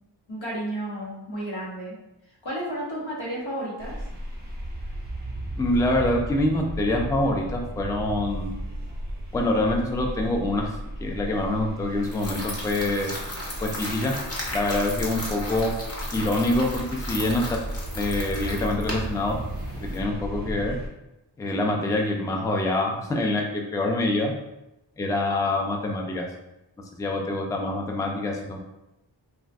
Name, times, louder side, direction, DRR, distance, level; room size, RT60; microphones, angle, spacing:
voice 1, 0.3-2.0 2.4-4.0, right 1 dB, 80° left, -5 dB, 1.0 m, -32 dB
sound 1, 3.8-20.9, right 1 dB, 20° right, 0.8 m, -35 dB
voice 2, 5.6-8.5 9.3-13.1 13.6-14.1 14.5-15.7 16.1-17.6 17.9-19.4 19.7-20.8 21.4-24.3 25.0-26.2 27.0-28.6, left 2 dB, 10° left, 1 dB, 0.3 m, -25 dB
sound 2, 12.0-20.0, left 1 dB, 30° left, 0.8 m, -35 dB
2.5 x 2.3 x 3.3 m, 0.93 s
wide cardioid pair, 60°, 45 cm